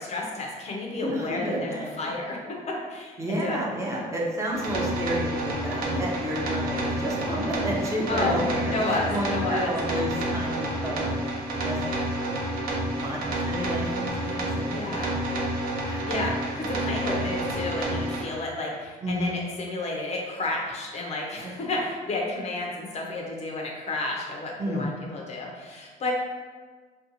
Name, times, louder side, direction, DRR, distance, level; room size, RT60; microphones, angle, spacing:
voice 1, 0.0-2.4 2.9-3.6 8.1-8.4 8.7-9.8 14.7-15.1 16.0-26.1, left 2 dB, 40° left, -1 dB, 0.5 m, -31 dB
voice 2, 1.0-2.1 3.2-11.2 11.5-11.8 13.0-14.9 15.8-16.1 19.0-19.4 21.4-21.5 24.6-24.8, equal, 15° right, -4 dB, 0.5 m, -31 dB
sound 1, 4.5-18.2, right 1 dB, 60° right, 0.6 m, -29 dB
2.5 x 2.2 x 2.7 m, 1.5 s
cardioid pair, 110°, 17 cm